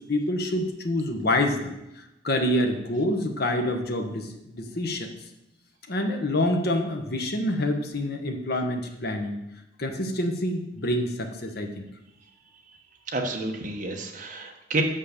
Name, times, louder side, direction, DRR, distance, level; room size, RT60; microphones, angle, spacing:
voice 1, 0.1-5.1 5.9-9.4 9.8-11.9, left 1 dB, 60° left, 4 dB, 1.1 m, -27 dB
voice 2, 13.1-14.8, right 2 dB, 45° right, 2 dB, 1.2 m, -30 dB
6.5 x 5.6 x 6.7 m, 0.90 s
head